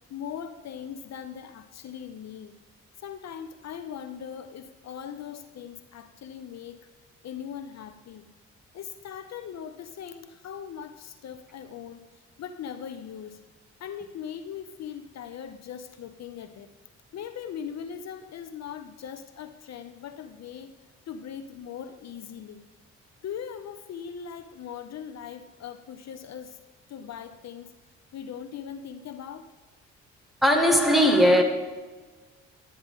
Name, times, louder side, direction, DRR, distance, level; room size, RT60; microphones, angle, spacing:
voice 1, 0.1-2.5 3.0-6.9 7.2-8.3 8.7-13.4 13.8-16.7 17.1-20.7 21.1-22.6 23.2-26.6 26.9-27.8 28.1-29.5, left 8 dB, 60° left, 0.7 m, -40 dB
voice 2, 30.4-31.4, equal, ahead, 1.7 m, -18 dB
12.0 x 9.5 x 3.7 m
cardioid pair, 90°, 30 cm